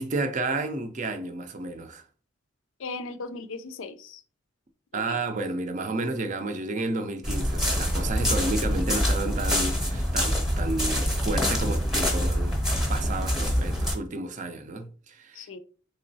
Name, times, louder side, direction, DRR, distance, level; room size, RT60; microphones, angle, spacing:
voice 1, 0.0-2.0 4.9-12.6 12.9-15.6, right 2 dB, 40° right, 0.4 m, -31 dB
voice 2, 2.8-4.2 4.9-5.2 15.3-15.6, left 3 dB, 75° left, 0.4 m, -37 dB
sound 1, 7.2-13.9, equal, 5° right, 0.7 m, -25 dB
3.7 x 3.0 x 2.7 m
head